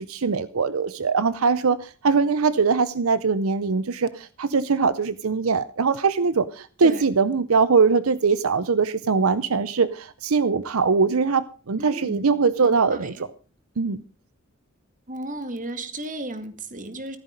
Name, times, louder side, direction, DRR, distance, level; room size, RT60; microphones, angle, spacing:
voice 1, 0.0-13.3 13.8-14.0, right 5 dB, 75° right, 0.7 m, -22 dB
voice 2, 11.8-12.2 12.6-13.2 15.1-17.2, right 1 dB, 40° right, 2.1 m, -34 dB
15.0 x 13.0 x 5.2 m
head